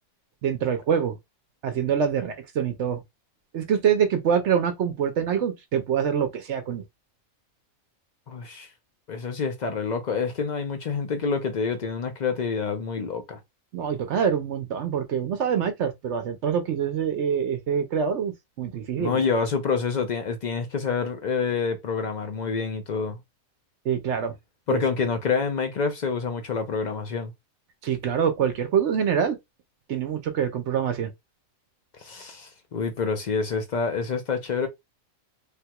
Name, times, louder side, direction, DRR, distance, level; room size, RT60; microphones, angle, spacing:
voice 1, 0.4-1.1 1.6-3.0 3.5-6.8 13.7-19.3 23.9-24.3 24.7-24.8 27.8-29.4 29.9-31.1, right 7 dB, 65° right, 0.8 m, -25 dB
voice 2, 8.3-8.7 9.1-13.4 19.0-23.2 24.7-27.3 32.0-34.7, left 5 dB, 60° left, 0.4 m, -27 dB
3.4 x 2.2 x 2.8 m
omnidirectional pair, 1.4 m